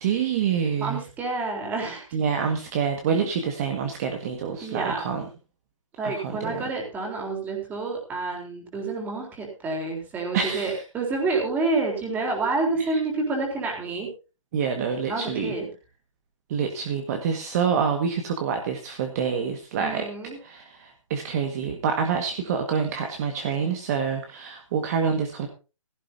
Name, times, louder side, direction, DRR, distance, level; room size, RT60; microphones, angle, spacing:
voice 1, 0.0-1.0 2.1-5.3 6.0-6.6 10.3-10.8 12.8-13.0 14.5-15.5 16.5-20.1 20.4-25.5, right 6 dB, 30° right, 4 dB, 1.7 m, -27 dB
voice 2, 0.8-2.0 4.6-5.0 6.0-14.1 15.1-15.7 19.8-20.4, right 3 dB, 10° right, 1 dB, 3.8 m, -28 dB
16.5 x 14.0 x 2.8 m, 0.32 s
hypercardioid pair, 160°, 17 cm